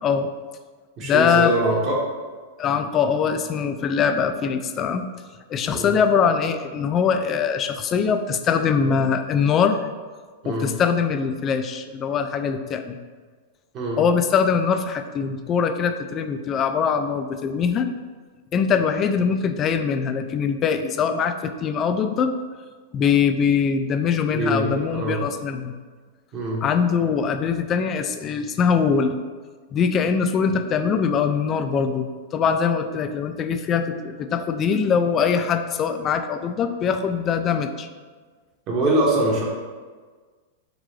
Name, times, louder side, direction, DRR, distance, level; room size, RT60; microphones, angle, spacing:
voice 1, 0.0-0.3 1.0-1.5 2.6-5.0 5.5-9.8 10.4-13.0 14.0-17.9 18.5-22.3 22.9-25.7 26.6-29.2 29.7-37.9, left 6 dB, 30° left, 8 dB, 0.3 m, -22 dB
voice 2, 1.0-2.0 5.7-5.9 10.4-10.7 13.7-14.0 24.3-25.2 26.3-26.6 38.7-39.4, right 1 dB, 35° right, -3 dB, 1.2 m, -23 dB
3.8 x 3.7 x 3.2 m, 1.5 s
hypercardioid pair, 140°, 0 cm